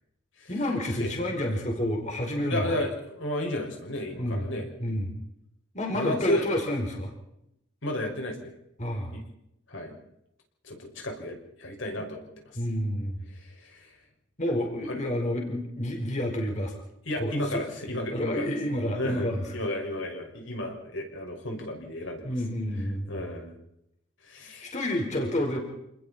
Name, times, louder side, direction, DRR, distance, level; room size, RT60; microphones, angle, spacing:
voice 1, 0.5-2.7 4.2-4.5 4.8-5.1 5.7-7.1 8.8-9.1 12.5-13.2 14.4-16.7 17.2-17.6 18.1-19.5 22.2-23.2 24.6-25.6, left 1 dB, 35° left, 1 dB, 4.8 m, -29 dB
voice 2, 2.5-4.7 5.9-6.5 7.8-8.5 9.1-9.2 9.7-10.0 10.6-12.3 13.3-14.0 14.9-15.0 17.1-18.5 18.9-22.3 23.1-23.5 24.2-24.7, left 1 dB, 75° left, 2 dB, 6.0 m, -33 dB
28.5 x 20.5 x 4.4 m, 0.81 s
head